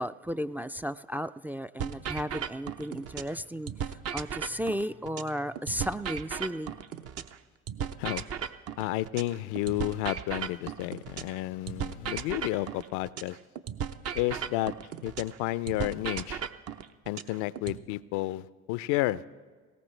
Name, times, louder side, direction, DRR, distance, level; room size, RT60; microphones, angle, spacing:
voice 1, 0.0-6.7, equal, 5° right, 10 dB, 0.3 m, -34 dB
sound 1, 1.8-3.4 3.7-7.4 7.7-11.4 11.7-15.4 15.7-17.8, right 8 dB, 55° right, 0.8 m, -36 dB
voice 2, 8.8-13.4 14.1-14.7 15.0-16.4 17.1-19.2, left 16 dB, 75° left, 18 dB, 0.5 m, -31 dB
19.5 x 17.5 x 3.2 m, 1.5 s
hypercardioid pair, 65°, 29 cm